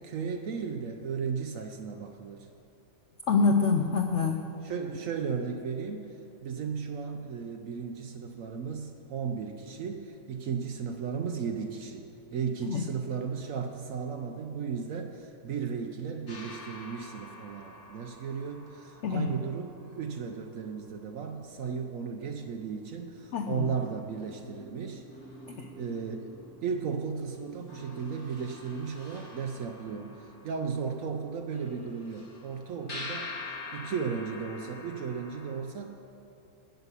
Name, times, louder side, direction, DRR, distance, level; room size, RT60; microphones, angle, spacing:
voice 1, 0.0-2.5 4.6-25.0 25.8-26.3 26.6-36.1, right 6 dB, 65° right, 5 dB, 0.8 m, -35 dB
voice 2, 3.3-4.4 12.7-12.8 19.0-19.3 23.3-23.7 25.5-25.6, left 4 dB, 85° left, 4 dB, 0.6 m, -26 dB
sound 1, 16.3-21.1 22.6-22.7 23.1-35.5, left 2 dB, 40° left, 1.8 m, -47 dB
8.0 x 6.8 x 8.3 m, 2.7 s
omnidirectional pair, 1.9 m